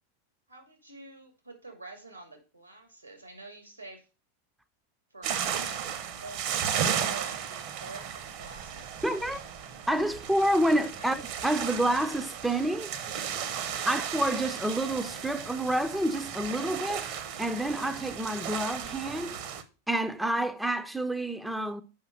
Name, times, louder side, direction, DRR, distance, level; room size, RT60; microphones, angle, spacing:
voice 1, 0.5-4.1 5.1-9.4 11.0-11.1, right 2 dB, 90° right, 2.5 m, -48 dB
sound 1, 5.2-19.6, right 8 dB, 45° right, 1.0 m, -35 dB
voice 2, 9.0-9.4 9.9-12.9 13.9-17.1 17.4-19.4 19.9-21.8, right 1 dB, 5° right, 0.6 m, -28 dB
6.4 x 5.4 x 6.2 m
figure-of-eight pair, 90°, 0 cm